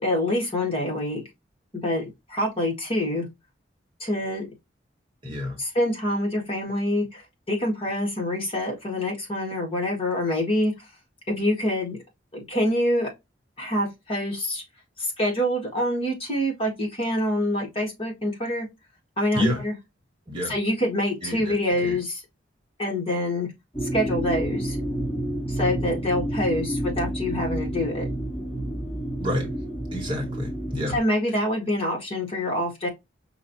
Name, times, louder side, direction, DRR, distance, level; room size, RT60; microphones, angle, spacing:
voice 1, 0.0-1.2 1.7-3.3 4.0-4.5 5.6-10.9 11.3-12.0 12.3-13.1 13.6-14.6 15.0-18.7 19.2-19.7 20.5-22.2 22.8-23.5 23.8-24.8 25.5-28.1 30.9-32.9, left 1 dB, 30° left, 1.9 m, -26 dB
voice 2, 5.2-5.6 19.3-19.6 20.3-20.5 21.2-21.5 21.8-22.0 29.2-29.5 29.9-31.0, left 1 dB, 25° right, 1.6 m, -28 dB
sound 1, 23.7-31.0, right 1 dB, 10° left, 2.0 m, -29 dB
5.6 x 2.7 x 2.7 m
head